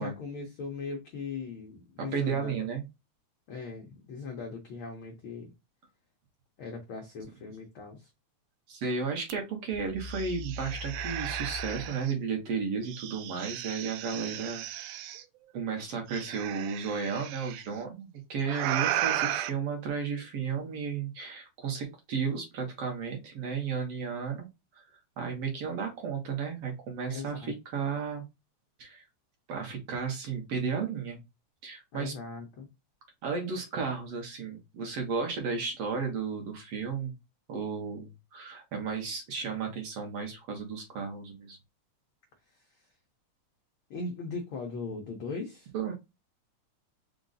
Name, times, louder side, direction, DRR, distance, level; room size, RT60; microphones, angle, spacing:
voice 1, 0.0-2.5 3.5-5.5 6.6-8.1 27.1-27.5 31.9-32.7 42.5-42.7 43.9-45.7, left 4 dB, 85° left, 1.1 m, -39 dB
voice 2, 2.0-2.8 8.7-14.9 15.5-24.5 24.7-24.8 25.2-28.2 28.8-29.0 29.5-31.2 31.6-32.1 33.2-37.2 37.5-41.6 45.7-45.9, right 5 dB, 65° right, 1.8 m, -33 dB
sound 1, 9.3-9.4 9.7-12.1 12.9-15.2 16.1-17.6 18.4-19.5, right 11 dB, 90° right, 2.1 m, -34 dB
5.0 x 2.3 x 3.9 m
omnidirectional pair, 3.5 m